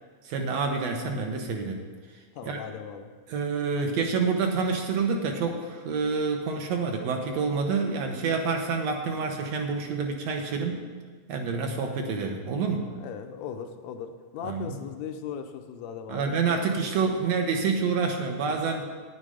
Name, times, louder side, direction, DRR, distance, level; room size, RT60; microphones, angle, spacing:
voice 1, 0.3-1.8 2.5-2.6 3.3-10.8 11.3-12.9 14.4-14.8 16.1-18.8, right 4 dB, 70° right, 3 dB, 2.0 m, -28 dB
voice 2, 2.3-3.1 12.9-16.4, left 7 dB, 80° left, 6 dB, 1.8 m, -38 dB
9.6 x 9.5 x 5.0 m, 1.5 s
omnidirectional pair, 3.3 m